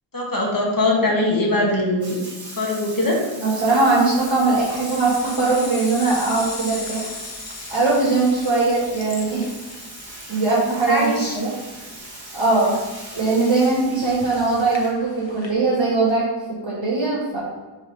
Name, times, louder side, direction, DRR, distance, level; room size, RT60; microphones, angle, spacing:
voice 1, 0.1-2.2 2.6-3.2 10.8-11.4, left 2 dB, 45° left, -2 dB, 1.6 m, -21 dB
Bathtub (filling or washing), 2.0-14.9, right 1 dB, 50° right, 2.2 m, -40 dB
voice 2, 3.4-7.1 7.7-9.4 10.3-11.5 12.3-12.8 13.1-16.2 16.6-17.4, right 3 dB, 70° right, -8 dB, 2.2 m, -20 dB
sound 1, 3.6-15.5, left 3 dB, 70° left, 1.1 m, -39 dB
4.9 x 4.9 x 5.5 m, 1.2 s
wide cardioid pair, 80°, 47 cm